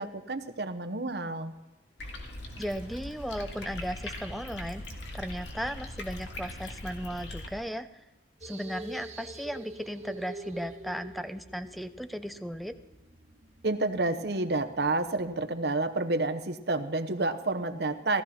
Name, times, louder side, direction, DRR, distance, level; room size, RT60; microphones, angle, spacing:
voice 1, 0.0-1.5 13.6-18.2, right 2 dB, 65° right, 8 dB, 0.9 m, -29 dB
sound 1, 2.0-7.5, left 1 dB, 80° left, 2.2 m, -40 dB
voice 2, 2.6-4.8 5.1-7.9 8.4-12.7, equal, ahead, 11 dB, 0.5 m, -36 dB
sound 2, 8.4-15.5, right 1 dB, 40° right, 1.2 m, -46 dB
17.0 x 13.0 x 4.3 m, 1.1 s
head